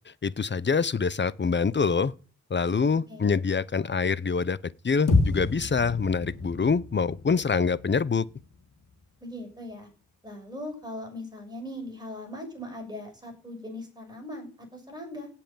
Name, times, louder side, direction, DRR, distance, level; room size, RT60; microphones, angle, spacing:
voice 1, 0.1-2.1 2.5-8.3, left 5 dB, 35° left, 0.7 m, -25 dB
sound 1, 5.1-9.4, left 3 dB, 80° left, 3.1 m, -30 dB
voice 2, 9.2-9.9 10.2-15.3, left 1 dB, 15° right, 7.0 m, -39 dB
17.0 x 5.8 x 8.9 m
wide cardioid pair, 120°, 31 cm